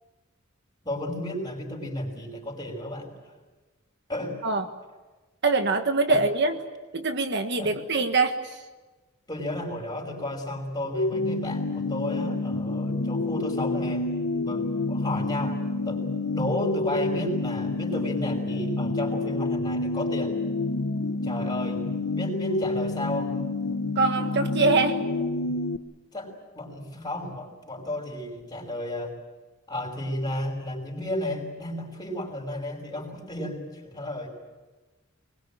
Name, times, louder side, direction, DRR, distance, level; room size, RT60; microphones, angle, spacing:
voice 1, 0.8-3.1 4.1-4.4 6.1-6.2 7.6-7.8 9.3-14.1 14.4-15.6 15.8-16.1 16.3-20.3 21.2-21.9 22.1-23.4 26.1-29.1 29.7-34.3, left 1 dB, 20° left, 1 dB, 5.6 m, -33 dB
voice 2, 5.4-6.5 6.9-8.4 24.0-25.0, right 3 dB, 55° right, 6 dB, 1.6 m, -23 dB
sound 1, 10.9-25.8, left 2 dB, 80° left, 1.0 m, -28 dB
24.0 x 21.5 x 9.1 m, 1.2 s
head